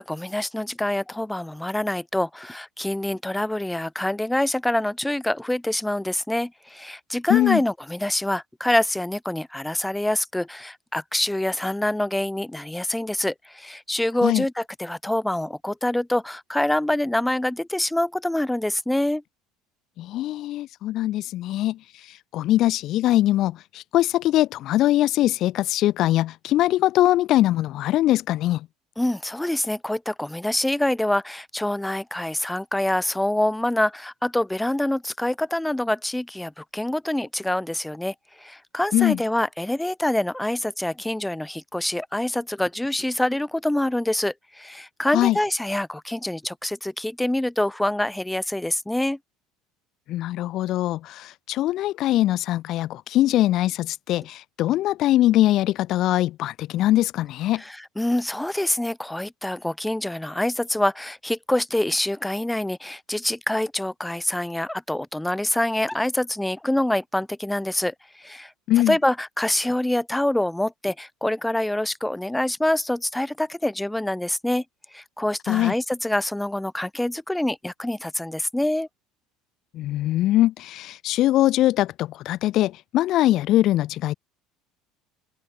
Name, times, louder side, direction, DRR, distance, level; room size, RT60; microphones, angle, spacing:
voice 1, 0.0-19.2 29.0-49.2 57.6-68.5 68.9-74.6 74.9-78.9, left 1 dB, 5° left, 3.5 m, -26 dB
voice 2, 7.3-7.6 14.2-14.4 20.0-28.7 38.9-39.2 45.1-45.4 50.1-57.6 68.7-69.0 75.5-75.7 79.7-84.1, left 14 dB, 50° left, 0.8 m, -22 dB
figure-of-eight pair, 65°, 0 cm